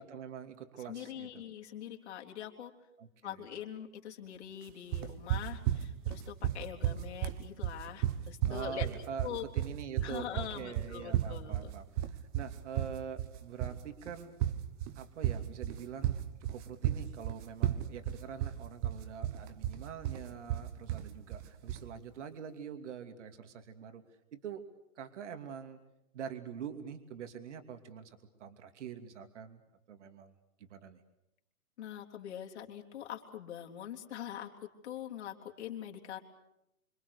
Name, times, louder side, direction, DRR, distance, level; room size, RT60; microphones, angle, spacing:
voice 1, 0.0-1.4 3.0-3.5 8.4-14.4 15.0-16.2 16.4-24.0 24.3-24.6 25.0-25.8 26.1-29.6 29.9-31.0, right 7 dB, 55° right, 7 dB, 2.8 m, -45 dB
voice 2, 0.9-2.7 3.2-8.9 9.2-9.5 10.0-11.7 31.8-36.2, left 10 dB, 50° left, 1 dB, 3.7 m, -43 dB
sound 1, 4.9-21.9, right 12 dB, 25° right, 1.4 m, -34 dB
27.5 x 26.0 x 6.9 m, 0.85 s
hypercardioid pair, 140°, 43 cm